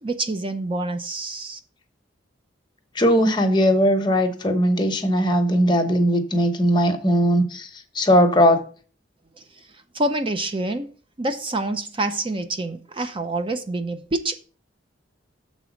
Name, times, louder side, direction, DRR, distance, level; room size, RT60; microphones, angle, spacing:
voice 1, 0.0-1.6 9.9-10.9 11.2-14.3, right 2 dB, 25° right, 0.5 m, -27 dB
voice 2, 2.9-7.7 7.9-8.6, equal, 25° left, 1.0 m, -19 dB
6.9 x 4.0 x 6.2 m
head